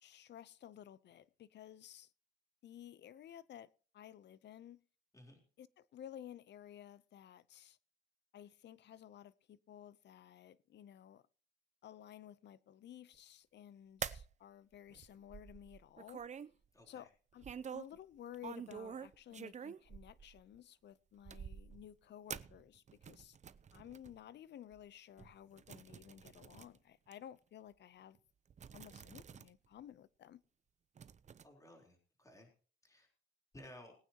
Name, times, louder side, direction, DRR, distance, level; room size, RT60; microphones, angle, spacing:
voice 1, 0.0-2.1 2.6-4.8 5.6-7.8 8.3-11.2 11.8-16.2 16.9-17.5 17.7-23.4 23.7-28.2 28.7-30.4, left 10 dB, 60° left, 0.7 m, -54 dB
sound 1, 14.0-14.3 14.9-16.5 17.4-18.0 18.3-20.6 21.2-21.9 22.3-24.2 24.7-24.8 25.2-26.8 27.1-27.2 28.2-28.3 28.5-29.5 29.8-29.9 31.0-31.4, right 7 dB, 35° right, 0.6 m, -48 dB
voice 2, 16.7-17.1 31.4-32.5 32.8-33.1 33.5-33.9, left 1 dB, 15° left, 3.8 m, -57 dB
21.0 x 9.2 x 2.9 m
cardioid pair, 90°, 20 cm